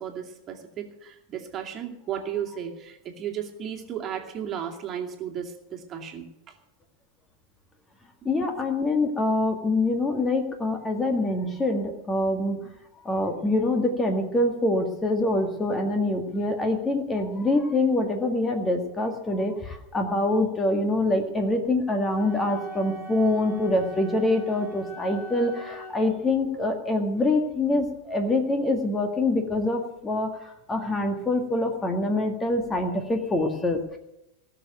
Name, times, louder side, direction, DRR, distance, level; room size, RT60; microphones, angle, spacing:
voice 1, 0.0-6.5 8.4-8.5, right 9 dB, 30° right, 2 dB, 2.4 m, -34 dB
voice 2, 8.3-12.6 13.0-34.0, left 2 dB, 15° left, 5 dB, 1.8 m, -25 dB
Wind instrument woodwind instrument, 22.1-26.0, right 1 dB, 50° left, 3.5 m, -41 dB
18.5 x 6.9 x 9.1 m, 0.89 s
figure-of-eight pair, 90°, 0 cm